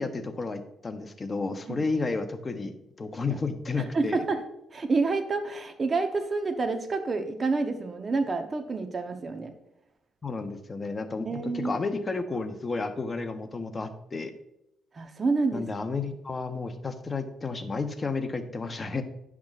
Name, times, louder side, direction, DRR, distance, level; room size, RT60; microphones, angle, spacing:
voice 1, 0.0-4.2 10.2-14.3 15.5-19.0, left 3 dB, 30° left, 8 dB, 0.8 m, -32 dB
voice 2, 3.8-4.4 4.7-9.5 11.3-11.8 14.9-15.7, right 3 dB, 35° right, 6 dB, 0.8 m, -28 dB
10.5 x 6.0 x 2.4 m, 0.83 s
cardioid pair, 90°, 0 cm